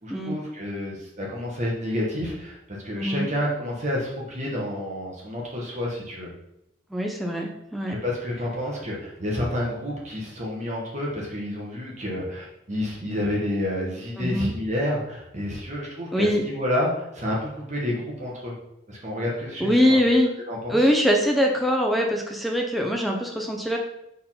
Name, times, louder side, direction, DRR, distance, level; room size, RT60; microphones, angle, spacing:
voice 1, 0.0-6.3 7.9-18.5 18.9-20.0 20.5-20.8, left 1 dB, 40° right, -3 dB, 1.6 m, -29 dB
voice 2, 3.0-3.3 6.9-7.9 14.2-14.5 16.1-16.4 19.6-20.3 20.7-23.8, equal, ahead, 0 dB, 0.9 m, -22 dB
4.6 x 4.2 x 5.7 m, 0.81 s
head